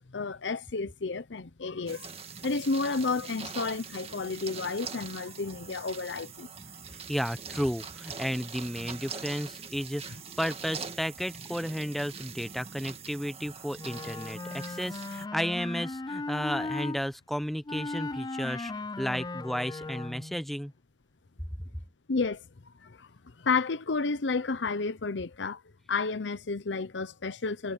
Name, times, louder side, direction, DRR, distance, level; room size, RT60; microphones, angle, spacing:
voice 1, 0.0-2.1 2.4-6.5 22.1-22.4 23.0-23.1 23.4-25.6 25.9-27.7, left 4 dB, 85° left, 0.8 m, -31 dB
sound 1, 1.9-15.3, right 5 dB, 35° right, 1.9 m, -43 dB
voice 2, 7.1-18.7 19.0-20.7, equal, ahead, 0.8 m, -33 dB
Wind instrument woodwind instrument, 13.8-17.0 17.7-20.4, left 3 dB, 25° left, 0.4 m, -37 dB
head